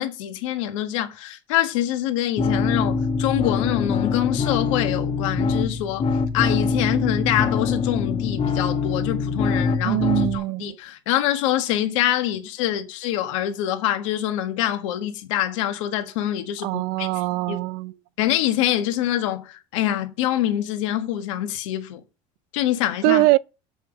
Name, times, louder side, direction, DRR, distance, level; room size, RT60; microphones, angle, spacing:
voice 1, 0.0-6.1 6.3-17.1 17.5-17.6 18.2-22.0 22.5-23.2, left 12 dB, 80° left, 1.7 m, -25 dB
sound 1, 2.4-10.4, left 4 dB, 35° left, 1.5 m, -24 dB
voice 2, 9.8-10.7 16.6-17.9 23.0-23.4, right 20 dB, 70° right, 0.6 m, -22 dB
7.4 x 5.7 x 7.1 m
supercardioid pair, 85°, 16 cm